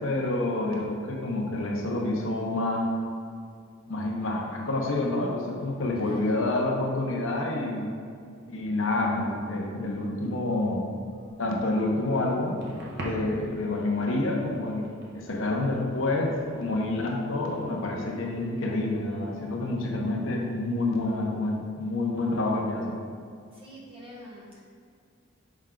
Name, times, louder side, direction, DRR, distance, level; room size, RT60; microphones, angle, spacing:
voice 1, 0.0-2.9 3.9-7.9 8.5-10.9 11.4-12.6 13.0-22.9, left 2 dB, 75° left, -1 dB, 0.9 m, -28 dB
voice 2, 6.0-6.4 23.5-24.6, equal, 25° right, -6 dB, 1.4 m, -46 dB
sound 1, 11.1-19.3, equal, 55° right, 1.0 m, -45 dB
6.2 x 4.4 x 3.8 m, 2.3 s
head